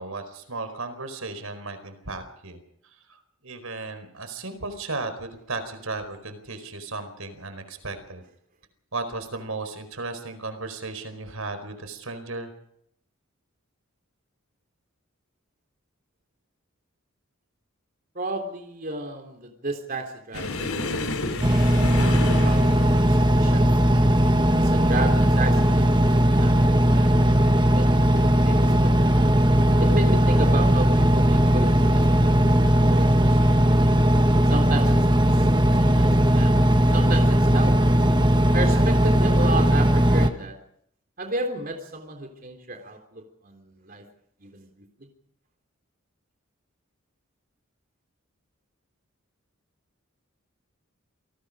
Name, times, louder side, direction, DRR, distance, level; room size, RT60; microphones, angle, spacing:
voice 1, 0.0-8.2 8.9-12.5, right 3 dB, 80° right, 9 dB, 4.7 m, -35 dB
voice 2, 18.2-23.6 24.6-29.2 29.8-32.3 32.7-33.6 34.5-35.5 35.8-37.8 38.5-40.6 41.2-44.0 44.4-44.7, right 2 dB, 40° right, 3 dB, 3.7 m, -33 dB
sound 1, 20.3-27.6 27.9-28.2 28.6-28.7 29.6-30.1 31.1-31.3 32.7-32.8, left 2 dB, 80° left, 3.7 m, -33 dB
Engine, 21.4-40.3, equal, 20° right, 1.5 m, -18 dB
28.0 x 19.5 x 5.1 m, 0.70 s
head